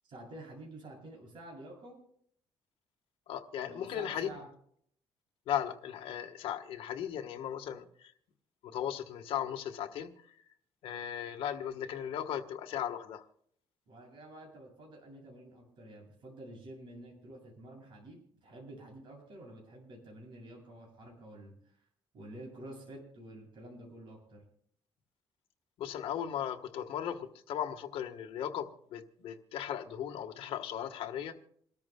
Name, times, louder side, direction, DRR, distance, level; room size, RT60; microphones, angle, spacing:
voice 1, 0.0-2.0 3.6-4.5 13.9-21.8 22.1-24.4, right 1 dB, 55° right, 0 dB, 7.7 m, -49 dB
voice 2, 3.3-4.3 5.5-8.1 8.6-10.3 10.8-13.2 25.8-31.3, left 10 dB, 70° left, 4 dB, 1.3 m, -37 dB
28.0 x 13.5 x 2.2 m, 0.64 s
cardioid pair, 155°, 10 cm